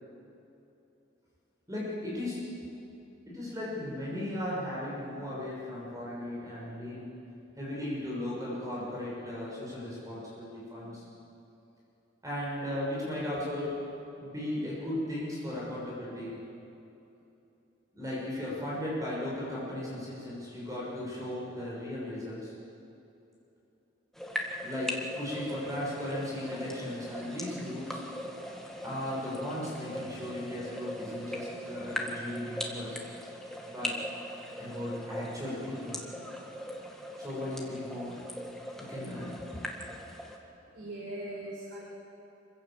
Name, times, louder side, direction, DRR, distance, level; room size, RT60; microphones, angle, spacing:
voice 1, 1.7-2.4 3.3-7.1 7.6-11.0 12.2-13.8 14.2-16.4 17.9-22.5 24.6-28.0 28.8-33.0 33.7-34.0 34.6-36.0 37.2-38.2 38.8-39.4, left 1 dB, 20° right, -6 dB, 6.5 m, -36 dB
sound 1, 24.1-40.4, left 1 dB, ahead, 2.0 m, -40 dB
voice 2, 40.1-41.8, right 1 dB, 60° right, -5 dB, 4.5 m, -42 dB
27.0 x 16.0 x 7.6 m, 2.9 s
head